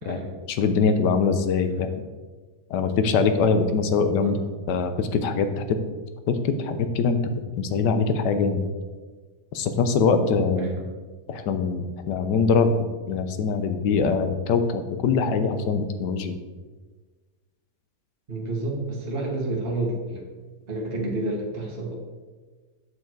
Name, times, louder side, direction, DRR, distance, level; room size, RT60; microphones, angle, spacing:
voice 1, 0.5-1.9 2.7-4.4 4.7-5.8 6.3-7.2 7.6-8.6 9.5-10.7 11.3-12.7 13.1-16.4, left 5 dB, 85° left, 9 dB, 1.4 m, -23 dB
voice 2, 18.3-20.2 20.7-22.0, right 2 dB, 35° right, -2 dB, 1.6 m, -29 dB
8.2 x 7.0 x 4.6 m, 1.4 s
omnidirectional pair, 1.8 m